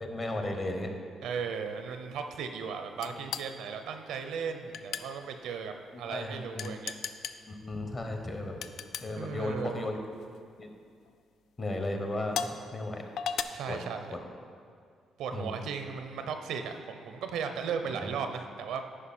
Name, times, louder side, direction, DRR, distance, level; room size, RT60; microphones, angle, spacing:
voice 1, 0.0-0.9 5.9-6.8 7.5-8.6 9.0-10.0 10.6-10.7 11.6-13.0 13.7-13.8 14.1-14.2 15.3-15.6 18.0-18.1, left 2 dB, 35° left, 4 dB, 1.1 m, -35 dB
voice 2, 1.2-6.9 9.1-9.9 13.5-14.2 15.2-18.8, right 6 dB, 85° right, 7 dB, 0.6 m, -36 dB
sound 1, 3.0-3.5 4.7-5.1 6.6-7.4 8.6-9.1 10.1-10.4 11.1-11.2 12.3-12.6 13.2-13.4, left 7 dB, 75° left, 0.3 m, -35 dB
9.8 x 5.3 x 4.3 m, 2.2 s
cardioid pair, 90°, 0 cm